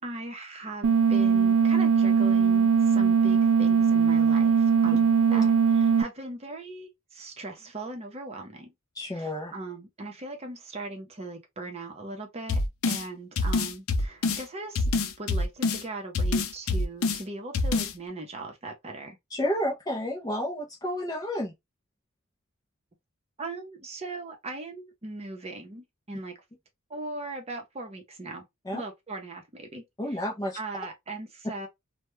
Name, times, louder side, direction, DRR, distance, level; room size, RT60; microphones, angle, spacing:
voice 1, 0.0-8.7 9.1-19.2 23.4-26.4 26.9-28.5 28.7-29.8 30.1-30.2 30.5-31.7, right 2 dB, 30° right, 0.7 m, -39 dB
sound 1, 0.8-6.0, right 6 dB, 70° right, 0.3 m, -21 dB
voice 2, 9.0-9.5 19.3-21.5 28.7-28.8 30.0-30.6, left 1 dB, 15° left, 0.4 m, -30 dB
sound 2, 12.5-13.0 13.4-14.4 14.8-15.8 16.2-17.2 17.5-17.9, left 3 dB, 70° left, 0.5 m, -26 dB
2.2 x 2.1 x 3.0 m
head